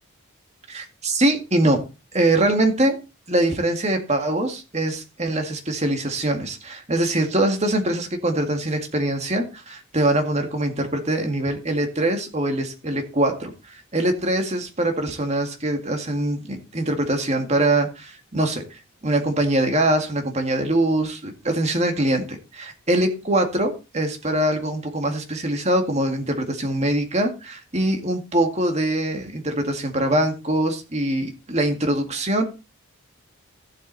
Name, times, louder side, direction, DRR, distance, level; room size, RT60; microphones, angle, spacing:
voice 1, 0.7-1.8 2.1-3.0 3.3-32.4, right 1 dB, 30° right, 2.0 m, -23 dB
14.0 x 7.8 x 4.1 m
head